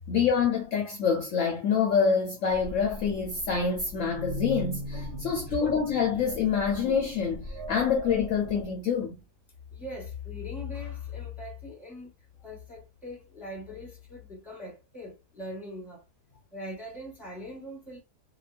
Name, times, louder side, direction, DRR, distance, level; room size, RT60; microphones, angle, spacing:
voice 1, 0.1-9.2, left 6 dB, 70° left, 0.8 m, -26 dB
sound 1, 2.5-8.6, equal, 75° right, 1.2 m, -39 dB
voice 2, 5.1-5.7 9.7-12.1 12.4-16.0 16.5-18.0, left 3 dB, ahead, 0.9 m, -40 dB
2.9 x 2.2 x 2.4 m
omnidirectional pair, 1.8 m